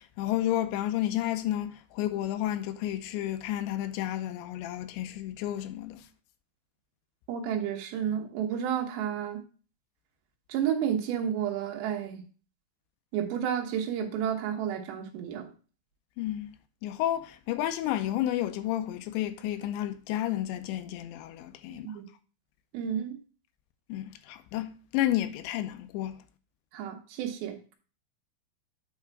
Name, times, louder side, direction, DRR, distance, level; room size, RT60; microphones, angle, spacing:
voice 1, 0.0-6.0 16.2-16.5 16.8-21.9 23.9-26.2, left 13 dB, 80° left, 2.8 m, -31 dB
voice 2, 7.3-9.4 10.5-12.2 13.1-15.5 21.7-22.0 22.7-23.2 26.7-27.6, right 9 dB, 75° right, 3.3 m, -31 dB
8.3 x 4.8 x 4.6 m
omnidirectional pair, 5.4 m